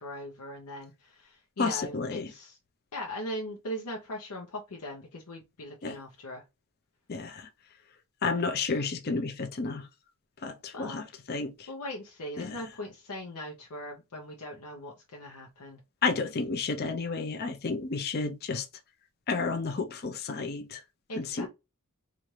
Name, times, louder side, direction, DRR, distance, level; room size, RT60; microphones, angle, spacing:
voice 1, 0.0-2.6 2.9-6.4 10.7-11.0 11.7-15.8 21.1-21.5, left 1 dB, 85° left, 0.8 m, -40 dB
voice 2, 1.6-2.3 5.8-6.0 7.1-7.5 8.2-9.9 10.4-11.7 12.4-12.6 16.0-18.7 19.3-20.8 21.2-21.5, left 4 dB, 45° left, 0.5 m, -31 dB
4.2 x 2.5 x 3.1 m
head